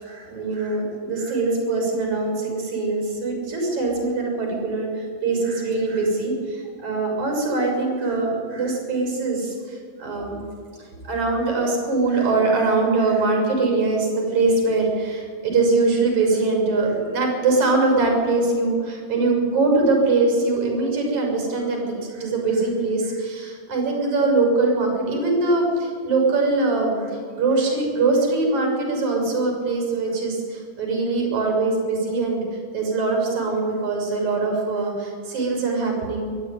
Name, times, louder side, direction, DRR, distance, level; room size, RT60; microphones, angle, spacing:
voice 1, 0.0-10.4 11.0-32.5 32.7-36.4, right 3 dB, 65° right, 1 dB, 7.9 m, -22 dB
23.0 x 14.0 x 10.0 m, 2.1 s
omnidirectional pair, 3.6 m